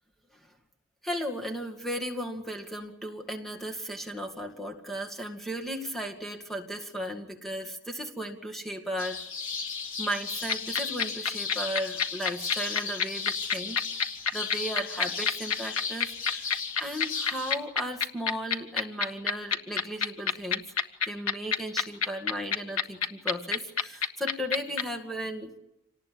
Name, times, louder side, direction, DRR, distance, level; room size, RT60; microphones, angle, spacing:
voice 1, 1.0-9.3 10.0-13.8 14.3-16.5 16.8-20.6 21.1-25.5, equal, ahead, 4 dB, 2.1 m, -35 dB
sound 1, 9.0-17.5, left 5 dB, 70° left, 3.6 m, -35 dB
sound 2, 10.5-24.8, left 7 dB, 90° left, 1.6 m, -26 dB
26.5 x 19.0 x 8.7 m, 0.86 s
head